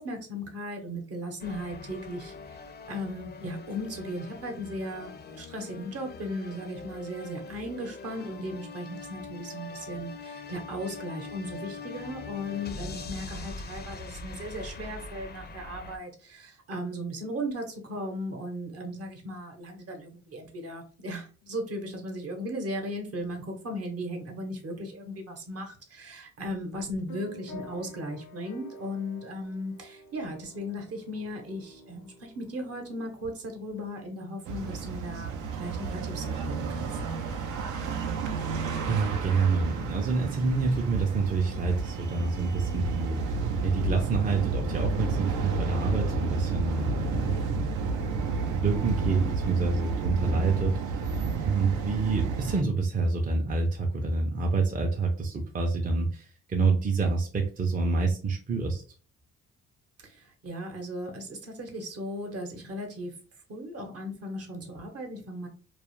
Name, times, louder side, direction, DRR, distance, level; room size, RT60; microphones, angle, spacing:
voice 1, 0.0-2.6 2.9-36.9 60.0-63.1 63.5-65.5, equal, 55° right, 3 dB, 0.8 m, -37 dB
sound 1, 1.4-16.0, left 4 dB, 35° left, 0.4 m, -42 dB
sound 2, 27.1-35.2, left 1 dB, 90° left, 0.6 m, -49 dB
sound 3, 34.5-52.6, right 4 dB, 80° right, 0.5 m, -31 dB
voice 2, 38.9-43.2 43.6-47.6 48.6-58.8, right 4 dB, 30° right, 1 dB, 0.5 m, -27 dB
2.3 x 2.0 x 3.0 m, 0.39 s
cardioid pair, 90°, 30 cm